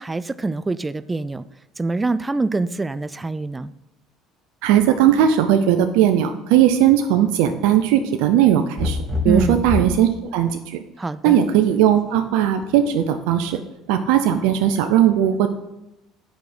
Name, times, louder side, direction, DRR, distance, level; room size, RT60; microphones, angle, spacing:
voice 1, 0.0-1.4 1.8-3.7 9.3-9.6 11.0-11.4, right 3 dB, 20° right, 16 dB, 0.4 m, -24 dB
voice 2, 4.6-9.0 9.2-10.8 11.2-13.6 13.9-15.5, right 10 dB, 75° right, 8 dB, 0.5 m, -18 dB
sound 1, 8.8-10.0 11.7-12.2, left 3 dB, 35° right, 1.8 m, -25 dB
8.4 x 5.0 x 6.0 m, 0.90 s
hypercardioid pair, 75°, 0 cm